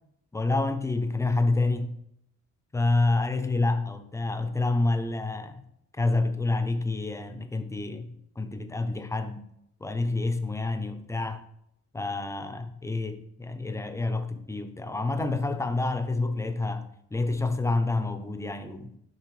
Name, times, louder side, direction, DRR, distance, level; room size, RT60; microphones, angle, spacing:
voice 1, 0.3-2.0 2.7-5.6 6.0-9.4 9.8-11.4 11.9-18.9, left 2 dB, 10° left, 0.3 m, -28 dB
6.6 x 5.4 x 3.1 m
cardioid pair, 155°, 31 cm